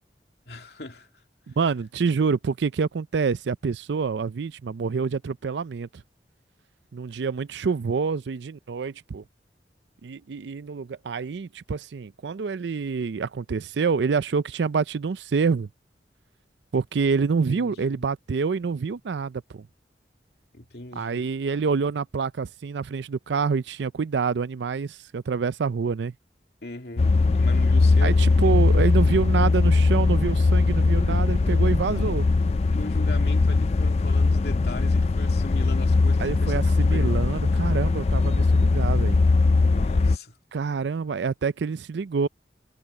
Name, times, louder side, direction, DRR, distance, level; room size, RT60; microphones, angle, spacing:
voice 1, 0.5-1.1 17.5-18.1 20.5-21.2 26.6-28.6 30.9-31.2 31.9-32.2 32.7-36.6 36.9-37.3 39.6-40.4, left 2 dB, 65° left, 2.4 m, -40 dB
voice 2, 1.5-6.0 6.9-9.2 10.0-15.7 16.7-19.7 21.0-26.1 28.0-32.3 36.2-39.2 40.5-42.3, right 5 dB, 85° right, 0.5 m, -27 dB
sound 1, 27.0-40.2, left 3 dB, 35° left, 0.4 m, -20 dB
head